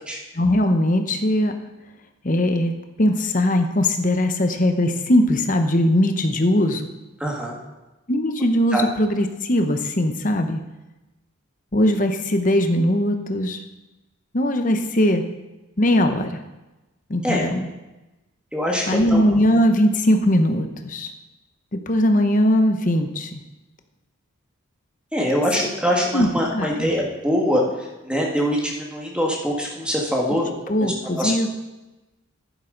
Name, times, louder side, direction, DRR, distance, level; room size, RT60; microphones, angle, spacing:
voice 1, 0.3-1.5 2.2-2.7 3.0-6.9 8.1-10.6 11.7-13.6 14.3-15.2 15.8-16.4 17.1-17.7 18.9-21.1 21.7-23.4 25.6-25.7 26.1-26.9 30.3-30.4 30.7-31.5, left 1 dB, 35° left, 6 dB, 0.8 m, -20 dB
voice 2, 7.2-7.6 8.7-8.8 17.2-17.4 18.5-19.2 25.1-27.6 28.1-30.5 30.8-31.3, equal, 5° right, -2 dB, 1.6 m, -23 dB
11.0 x 10.5 x 3.9 m, 1.0 s
head